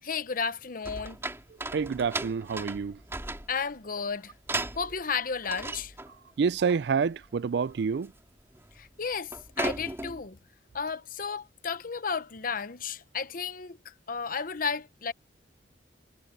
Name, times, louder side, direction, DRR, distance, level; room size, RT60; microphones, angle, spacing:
voice 1, 0.0-1.2 3.5-4.3 4.8-5.9 8.8-10.4 10.7-15.1, left 5 dB, 50° left, 0.9 m, -33 dB
sound 1, 0.8-3.8 4.5-5.1 5.4-6.2 6.5-6.8 7.0-7.3 7.6-8.1 8.4-8.8 9.2-10.3, right 2 dB, 15° right, 3.5 m, -36 dB
voice 2, 1.6-3.0 6.4-8.1, right 5 dB, 65° right, 0.4 m, -28 dB
head